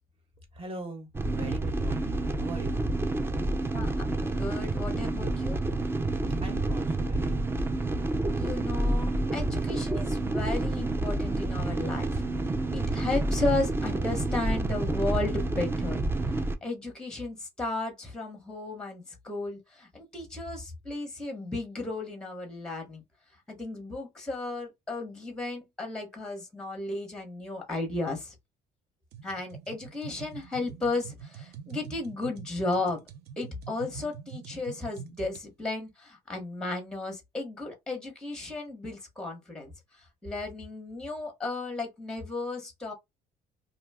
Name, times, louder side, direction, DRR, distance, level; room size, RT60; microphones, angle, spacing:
voice 1, 0.5-2.9 6.4-7.6, right 2 dB, 35° right, 1.2 m, -41 dB
sound 1, 1.1-16.6, right 2 dB, 15° right, 0.4 m, -29 dB
voice 2, 3.7-5.6 8.3-12.2 12.7-16.0 16.6-23.0 23.5-28.3 29.2-33.0 33.4-42.9, left 2 dB, 5° left, 0.9 m, -34 dB
sound 2, 29.1-35.5, right 7 dB, 70° right, 0.5 m, -45 dB
2.6 x 2.2 x 3.4 m
cardioid pair, 110°, 17 cm